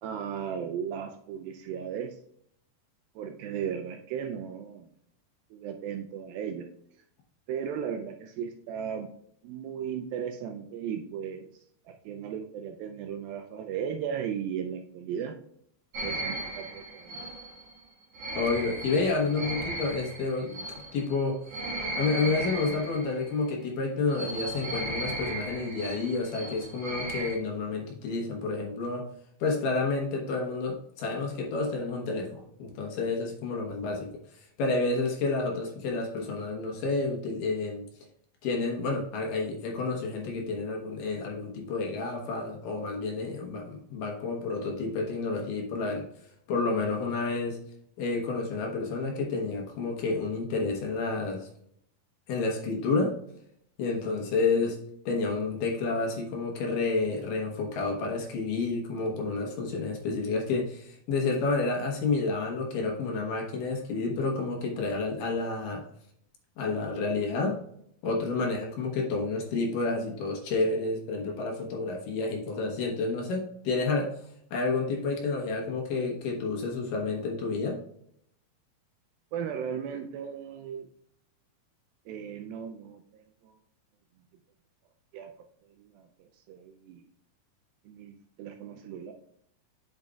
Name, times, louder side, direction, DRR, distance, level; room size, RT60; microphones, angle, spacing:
voice 1, 0.0-2.2 3.2-4.9 5.5-6.7 7.5-9.1 9.4-11.5 11.9-15.4 16.0-17.3 54.6-54.7 79.3-80.9 82.1-83.6 85.1-85.3 85.8-87.0 87.9-89.1, right 8 dB, 80° right, 5 dB, 2.2 m, -36 dB
sound 1, 15.9-23.5 24.1-27.4, right 2 dB, 50° right, 2.2 m, -36 dB
voice 2, 18.4-20.6 20.9-21.4 21.9-29.1 29.4-34.1 34.6-37.8 38.4-46.1 46.5-47.6 48.0-51.5 52.3-53.1 53.8-54.8 55.1-65.8 66.6-67.6 68.0-74.1 74.5-77.8, left 3 dB, 70° left, 0 dB, 2.5 m, -30 dB
8.9 x 6.3 x 2.3 m, 0.68 s
omnidirectional pair, 4.6 m